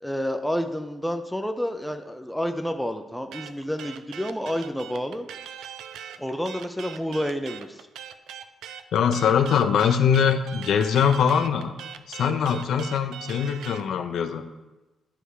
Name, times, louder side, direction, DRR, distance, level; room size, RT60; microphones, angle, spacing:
voice 1, 0.0-5.3 6.2-7.9, equal, ahead, 6 dB, 0.4 m, -29 dB
sound 1, 3.3-13.9, right 9 dB, 90° right, 0.4 m, -40 dB
voice 2, 8.9-11.7 12.1-14.4, left 7 dB, 65° left, 8 dB, 0.5 m, -22 dB
9.9 x 3.4 x 4.7 m, 1.1 s
cardioid pair, 160°, 0 cm